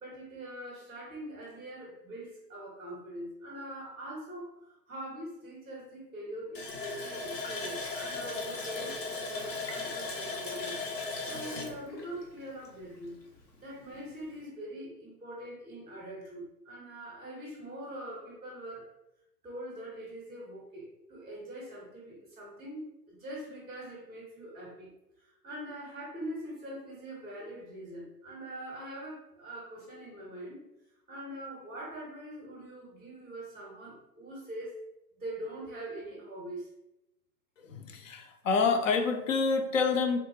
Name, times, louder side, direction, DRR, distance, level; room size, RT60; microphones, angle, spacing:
voice 1, 0.0-10.8 11.3-13.2 13.6-18.9 19.4-24.9 25.2-30.6 31.1-34.8 35.2-36.7, right 1 dB, ahead, -7 dB, 0.4 m, -43 dB
Water tap faucet, 6.5-13.0 13.4-13.5 13.9-14.1, left 3 dB, 85° left, 0.8 m, -37 dB
voice 2, 37.6-40.2, left 4 dB, 55° left, 5 dB, 0.5 m, -27 dB
3.4 x 2.0 x 3.2 m, 0.87 s
figure-of-eight pair, 115°, 49 cm